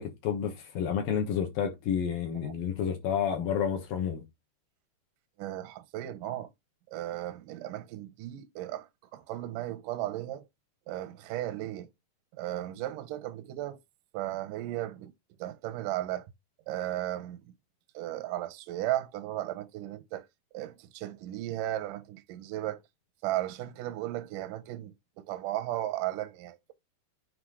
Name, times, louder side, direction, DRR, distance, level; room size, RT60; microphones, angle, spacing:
voice 1, 0.0-4.2, left 8 dB, 65° left, 2.6 m, -30 dB
voice 2, 5.4-6.5 6.9-10.4 10.9-11.9 12.4-13.8 14.1-15.1 15.4-16.3 16.7-17.4 17.9-20.3 20.5-22.8 23.2-26.7, right 14 dB, 75° right, 2.0 m, -35 dB
9.6 x 3.5 x 4.9 m
omnidirectional pair, 4.9 m